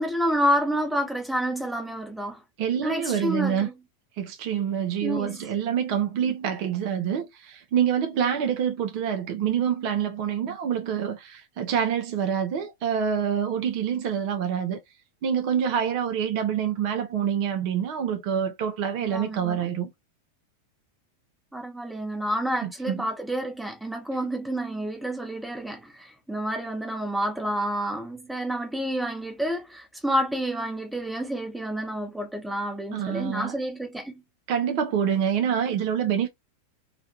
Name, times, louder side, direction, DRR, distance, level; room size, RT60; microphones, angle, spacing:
voice 1, 0.0-2.4 2.8-3.7 5.0-5.3 19.0-19.6 21.5-34.2, equal, 5° right, 0.8 m, -29 dB
voice 2, 2.6-3.7 4.2-14.8 15.2-19.9 22.6-23.0 32.9-33.6 34.5-36.3, right 8 dB, 45° right, 0.4 m, -26 dB
2.4 x 2.2 x 2.8 m
figure-of-eight pair, 90°, 0 cm